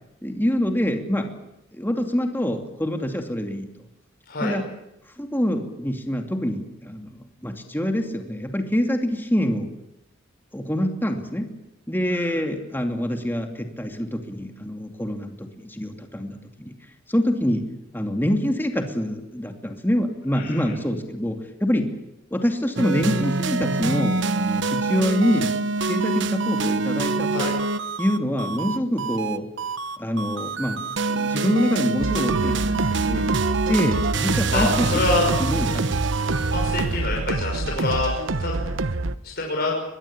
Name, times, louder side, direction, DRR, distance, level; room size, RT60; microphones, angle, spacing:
voice 1, 0.2-1.3 1.7-3.7 4.4-4.7 5.2-9.7 10.5-11.5 11.9-16.7 17.1-17.7 17.9-21.9 22.3-25.6 25.8-27.5 28.0-29.5 30.0-33.3 33.7-35.9, equal, 10° left, 4 dB, 2.6 m, -25 dB
voice 2, 12.1-12.4 20.3-20.7 27.3-27.5 33.7-33.9 34.5-35.3 36.5-38.1 38.4-38.6 39.2-39.7, left 2 dB, 50° left, -1 dB, 6.0 m, -26 dB
sound 1, 22.8-36.9, right 3 dB, 65° right, 1.3 m, -25 dB
sound 2, 32.0-39.2, right 2 dB, 80° right, 1.2 m, -27 dB
23.5 x 21.5 x 8.9 m, 0.87 s
head